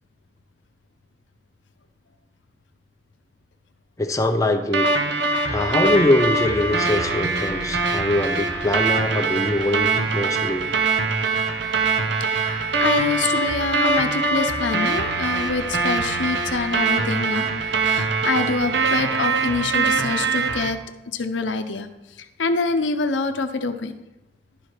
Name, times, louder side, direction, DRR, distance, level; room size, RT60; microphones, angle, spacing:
voice 1, 4.0-4.9 5.5-10.7, left 1 dB, 20° left, 4 dB, 0.6 m, -23 dB
sound 1, 4.7-20.7, right 3 dB, 70° right, 0.8 m, -23 dB
voice 2, 12.2-20.8 21.1-21.9 22.4-24.0, left 3 dB, 85° left, 8 dB, 0.7 m, -26 dB
11.5 x 4.8 x 4.5 m, 1.0 s
head